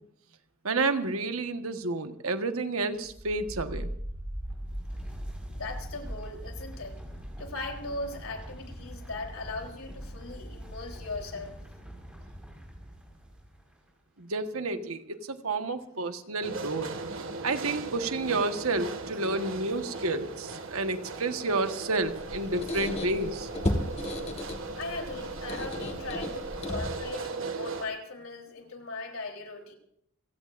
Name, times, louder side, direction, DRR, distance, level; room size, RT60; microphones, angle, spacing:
voice 1, 0.6-3.9 14.2-16.9 17.4-23.5, right 3 dB, 90° right, 7 dB, 1.4 m, -30 dB
sound 1, 3.0-13.8, equal, 5° right, 4.9 m, -41 dB
voice 2, 5.5-7.0 7.4-11.6 24.8-29.7, left 3 dB, 80° left, 2 dB, 3.7 m, -39 dB
sound 2, 16.4-27.9, right 3 dB, 70° right, 1.8 m, -38 dB
Squeak, 22.0-27.2, left 1 dB, 30° left, 1.8 m, -35 dB
29.0 x 17.0 x 2.6 m, 0.69 s
head